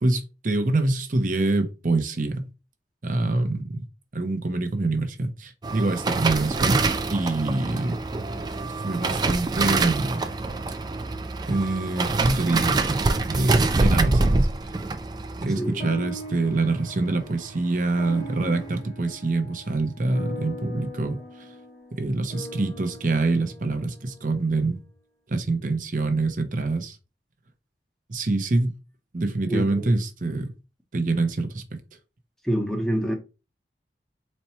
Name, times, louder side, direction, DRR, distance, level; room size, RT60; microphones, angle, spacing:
voice 1, 0.0-2.5 3.0-3.8 4.1-6.8 7.1-7.9 8.8-10.2 11.5-12.8 13.3-14.5 15.4-21.5 21.9-24.8 25.3-27.0 28.1-28.8 29.1-30.5 30.9-31.8, right 2 dB, 45° right, 0.7 m, -25 dB
sound 1, 5.6-17.0 17.3-17.6 17.9-18.4 18.7-18.8, right 3 dB, 25° right, 0.3 m, -25 dB
voice 2, 15.6-15.9 29.5-29.9 32.4-33.1, equal, 5° left, 0.7 m, -26 dB
sound 2, 15.8-24.5, equal, 35° left, 1.1 m, -41 dB
4.2 x 2.2 x 4.3 m
head